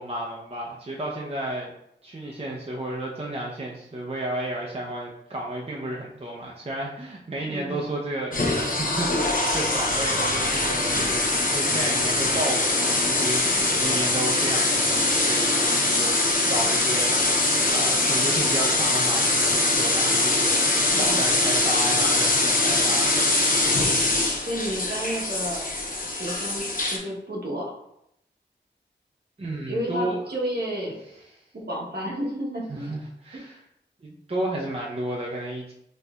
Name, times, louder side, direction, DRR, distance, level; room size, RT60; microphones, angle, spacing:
voice 1, 0.0-1.7 2.0-8.4 8.6-11.2 11.5-16.2 16.5-23.5 29.4-30.2 32.7-33.6 34.0-35.7, right 1 dB, 30° right, -3 dB, 0.5 m, -32 dB
voice 2, 7.4-7.8 20.9-21.3 24.5-25.7 26.1-27.8 29.7-31.0 31.5-32.9 33.3-33.4, equal, 55° right, -4 dB, 1.0 m, -31 dB
sound 1, 8.3-27.0, left 2 dB, 45° left, 0.7 m, -23 dB
4.2 x 2.5 x 2.3 m, 0.79 s
wide cardioid pair, 40°, 19 cm